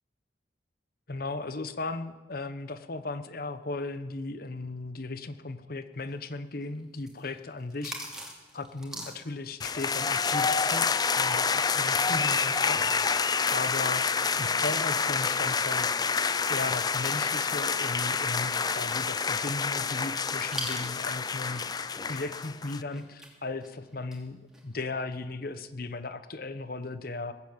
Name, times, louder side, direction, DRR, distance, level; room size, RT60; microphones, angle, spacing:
voice 1, 1.1-8.0 8.5-14.1 14.4-16.0 16.5-27.3, left 3 dB, 55° left, 11 dB, 1.0 m, -36 dB
sound 1, 6.0-11.0 11.3-16.9 17.2-17.3 17.7-21.9 22.1-24.2 24.5-24.7, right 1 dB, 5° right, 2.8 m, -45 dB
sound 2, 9.6-22.8, left 5 dB, 20° left, 0.4 m, -28 dB
20.0 x 8.6 x 8.0 m, 1.2 s
head